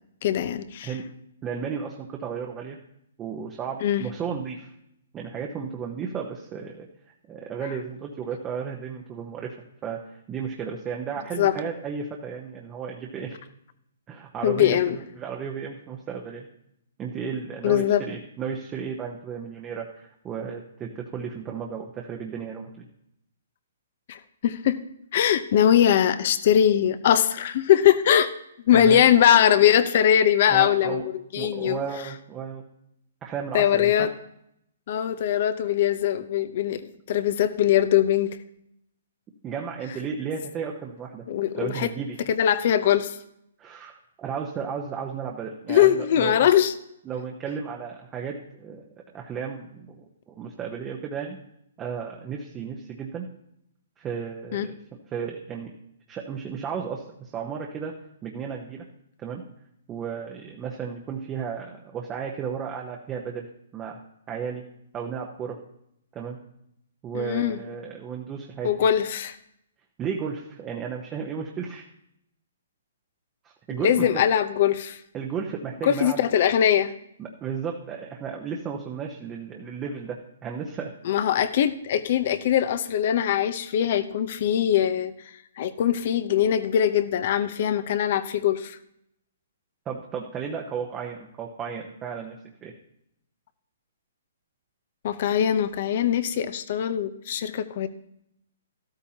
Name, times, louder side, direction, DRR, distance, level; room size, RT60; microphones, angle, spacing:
voice 1, 0.2-0.9 3.8-4.0 11.4-11.5 14.4-15.0 17.6-18.0 24.1-24.8 25.1-28.3 28.7-31.8 33.5-34.1 34.9-38.3 41.3-41.9 42.3-43.2 45.7-46.7 54.5-54.7 67.1-67.6 68.6-69.4 73.8-75.0 75.8-76.9 81.0-85.1 85.6-88.8 95.0-97.9, left 10 dB, 50° left, 13 dB, 0.8 m, -21 dB
voice 2, 1.4-2.8 3.2-4.7 5.1-6.9 7.3-9.6 9.8-10.0 10.3-13.4 14.1-16.5 17.0-22.8 28.7-29.0 30.5-31.1 31.4-32.6 33.2-34.1 39.4-41.2 41.6-42.2 43.6-46.5 47.1-48.9 49.1-51.4 51.8-53.3 54.0-54.8 55.1-55.7 56.1-57.9 58.2-58.8 59.2-59.4 59.9-63.5 63.7-64.0 64.3-64.6 64.9-65.6 66.1-66.4 67.0-68.8 70.0-71.9 73.4-74.2 75.1-76.2 77.2-80.9 89.9-92.7, right 6 dB, 20° right, 0 dB, 0.9 m, -34 dB
13.0 x 12.5 x 2.9 m, 0.77 s
hypercardioid pair, 150°, 0 cm